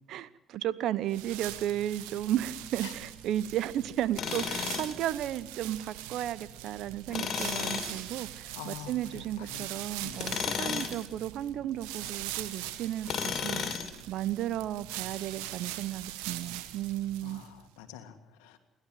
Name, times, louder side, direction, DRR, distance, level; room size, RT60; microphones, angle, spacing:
voice 1, 0.1-13.6 14.1-17.4, right 12 dB, 75° right, 17 dB, 0.9 m, -34 dB
sound 1, 1.1-17.6, right 14 dB, 90° right, 1.4 m, -42 dB
Tools, 4.2-5.0 7.1-8.0 10.1-11.0 13.1-14.0, left 7 dB, 60° left, 3.2 m, -33 dB
voice 2, 8.6-9.7 10.0-10.1 17.2-18.6, left 11 dB, 90° left, 7 dB, 1.8 m, -46 dB
29.0 x 12.0 x 7.7 m, 0.91 s
supercardioid pair, 60°, 0 cm